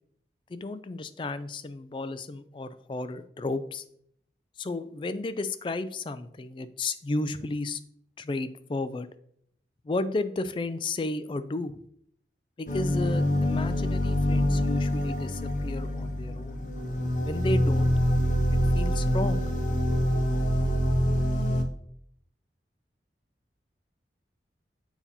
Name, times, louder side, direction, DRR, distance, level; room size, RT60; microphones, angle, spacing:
voice 1, 0.5-3.8 4.6-7.8 8.2-9.1 9.8-11.8 12.6-16.6 17.3-17.9 18.5-19.5, left 2 dB, 30° left, 12 dB, 0.3 m, -33 dB
sound 1, 12.7-21.6, equal, 45° left, 0.7 m, -25 dB
7.0 x 2.8 x 5.4 m, 0.68 s
head